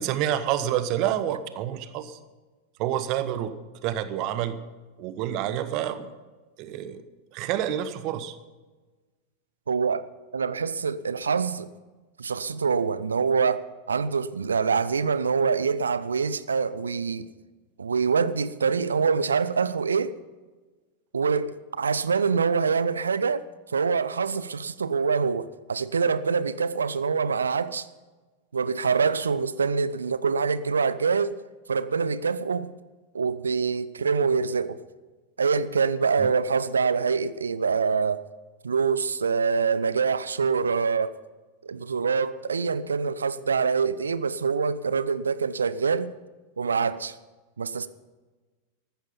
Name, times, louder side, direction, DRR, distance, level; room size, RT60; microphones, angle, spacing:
voice 1, 0.0-2.2 2.8-3.5 3.8-4.6 5.0-6.1 6.6-7.0 7.3-8.4 36.2-36.3, right 11 dB, 40° right, 1.1 m, -28 dB
voice 2, 9.7-10.0 10.3-11.7 12.2-17.3 17.8-20.1 21.1-23.5 23.7-27.9 28.5-31.4 31.7-32.7 33.1-34.8 35.4-38.2 38.6-41.2 41.6-46.1 46.6-47.2 47.6-47.9, right 5 dB, 70° right, 0.6 m, -25 dB
14.5 x 12.5 x 5.6 m
figure-of-eight pair, 90°, 0 cm